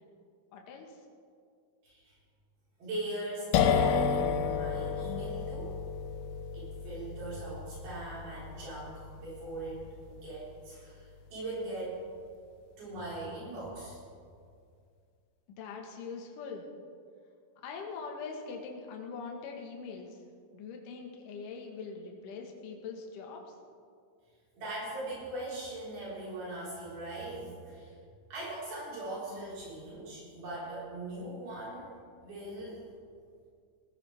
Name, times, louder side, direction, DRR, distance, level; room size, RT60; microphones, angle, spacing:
voice 1, 0.5-0.9 15.5-16.6 17.6-20.1 20.5-23.4, left 5 dB, 65° left, 1 dB, 2.8 m, -42 dB
voice 2, 1.8-2.1 2.8-5.8 6.5-12.0 12.8-14.0 24.6-27.9 28.3-31.9 32.2-32.8, right 1 dB, 70° right, -8 dB, 6.4 m, -40 dB
sound 1, 3.5-11.1, left 7 dB, 80° left, 2.7 m, -32 dB
19.0 x 15.0 x 3.5 m, 2.2 s
omnidirectional pair, 4.4 m